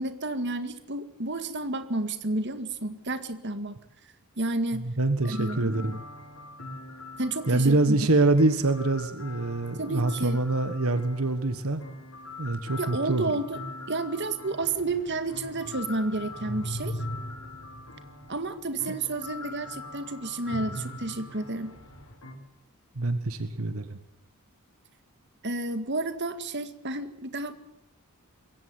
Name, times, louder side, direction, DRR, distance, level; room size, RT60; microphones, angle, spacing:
voice 1, 0.0-3.8 4.4-4.9 5.2-6.0 7.2-8.0 9.8-10.4 12.8-13.6 13.9-17.0 18.3-21.7 25.4-27.5, right 2 dB, 55° right, 10 dB, 2.0 m, -31 dB
voice 2, 4.7-6.0 7.5-11.8 12.4-13.3 22.9-24.0, right 2 dB, 75° right, 10 dB, 1.5 m, -25 dB
sound 1, 5.2-22.3, left 2 dB, 75° left, 6.8 m, -44 dB
sound 2, 14.6-18.9 19.3-19.4 20.5-22.1, equal, 55° left, 4.6 m, -40 dB
22.0 x 17.0 x 9.5 m, 0.77 s
head